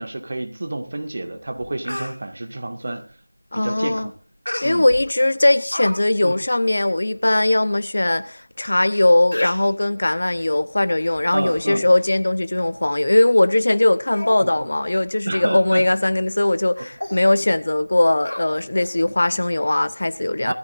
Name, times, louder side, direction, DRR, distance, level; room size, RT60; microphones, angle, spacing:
voice 1, 0.0-3.1 3.5-4.1 4.6-4.9 6.2-6.4 11.3-11.9 14.4-14.7 15.3-15.9 16.8-16.9 20.5-20.6, right 2 dB, 35° right, 1.9 m, -29 dB
Speech, 1.1-1.2 1.6-2.1 4.5-5.0 5.4-5.9 6.2-6.4 7.0-7.1 7.2-7.4 8.2-8.3 8.9-9.0 9.3-9.7 10.4-10.6 11.0-11.7 12.0-12.1 12.6-12.7 13.2-13.4 13.7-13.8 14.1-14.5 14.8-15.0 15.4-15.6 15.9-16.0 16.4-16.6 17.0-17.2 18.2-18.9 19.3-19.4, left 1 dB, 65° left, 6.1 m, -34 dB
voice 2, 3.5-4.1 4.6-20.5, left 1 dB, 45° left, 0.8 m, -19 dB
19.5 x 14.0 x 2.6 m
figure-of-eight pair, 175°, 0 cm